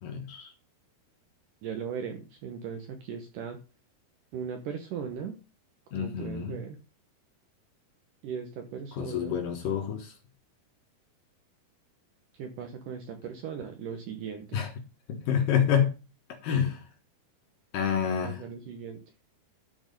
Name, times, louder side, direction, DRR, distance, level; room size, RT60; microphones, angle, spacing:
voice 1, 0.0-0.5 5.9-6.6 8.9-10.1 14.5-14.7 15.1-15.9 16.4-16.8 17.7-18.4, left 8 dB, 65° left, 2.6 m, -28 dB
voice 2, 1.6-3.6 4.3-5.4 5.9-6.8 8.2-9.4 12.4-14.6 18.2-19.0, right 7 dB, 70° right, 2.1 m, -38 dB
12.5 x 4.4 x 5.3 m
omnidirectional pair, 4.8 m